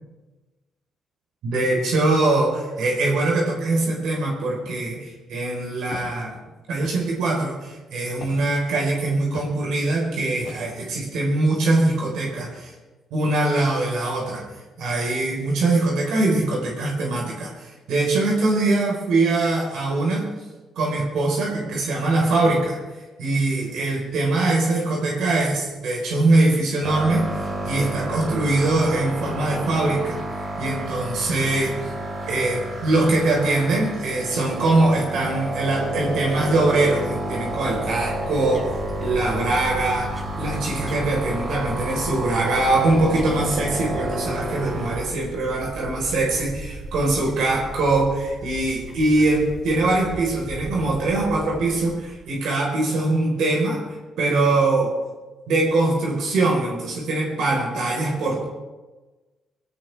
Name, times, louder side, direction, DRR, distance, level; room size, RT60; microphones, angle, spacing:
voice 1, 1.4-6.3 6.7-12.7 13.1-14.4 14.8-20.3 20.8-22.8 23.2-27.3 27.6-30.2 30.6-31.9 32.3-53.8 54.2-54.9 55.5-58.4, right 2 dB, 80° right, -1 dB, 4.1 m, -22 dB
Walk footsteps, 5.9-6.2 6.8-7.2 8.2-8.5 9.3-9.6 10.4-10.9, left 4 dB, 75° left, 2.9 m, -40 dB
sound 1, 26.8-45.0, right 1 dB, 45° right, 4.2 m, -30 dB
sound 2, 37.1-52.3, right 1 dB, 25° right, 2.6 m, -37 dB
20.0 x 16.5 x 3.4 m, 1.2 s
cardioid pair, 90°, 0 cm